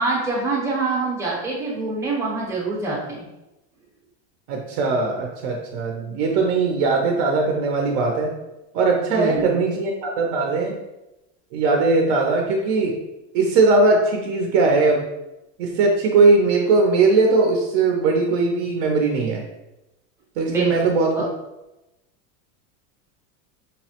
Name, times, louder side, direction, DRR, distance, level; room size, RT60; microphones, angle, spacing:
voice 1, 0.0-3.2 9.1-9.6 20.5-20.7 21.2-21.3, right 3 dB, 5° right, -5 dB, 0.6 m, -25 dB
voice 2, 4.5-8.3 8.7-10.7 11.5-13.0 13.3-15.1 15.6-19.4 20.4-21.1, right 3 dB, 55° right, 0 dB, 0.6 m, -19 dB
5.4 x 2.1 x 2.8 m, 0.96 s
cardioid pair, 165°, 39 cm